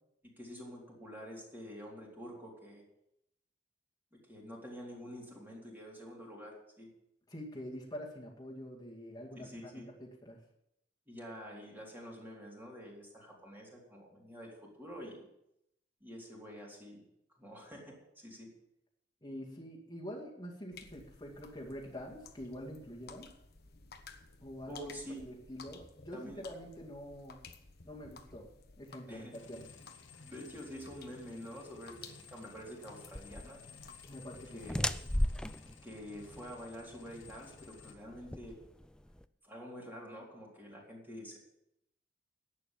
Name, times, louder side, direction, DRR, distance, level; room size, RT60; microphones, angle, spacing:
voice 1, 0.2-2.8 4.1-6.9 9.4-9.9 11.1-15.2 16.0-17.0 17.4-18.5 24.7-25.3 26.1-26.4 29.1-29.3 29.8-29.9 30.2-32.0 32.3-33.6 34.5-34.9 35.8-38.6 39.4-41.4, equal, 10° right, -3 dB, 3.8 m, -47 dB
voice 2, 7.3-10.4 19.2-23.3 24.4-24.9 25.2-27.4 27.8-28.5 28.8-29.7 34.0-34.6, equal, 20° left, -4 dB, 2.2 m, -46 dB
sound 1, 20.7-34.9, left 5 dB, 60° left, 1.2 m, -56 dB
sound 2, 29.3-37.9, left 5 dB, 85° left, 1.5 m, -56 dB
sound 3, 33.1-39.2, left 1 dB, 5° left, 0.4 m, -37 dB
11.0 x 8.6 x 7.4 m, 0.81 s
head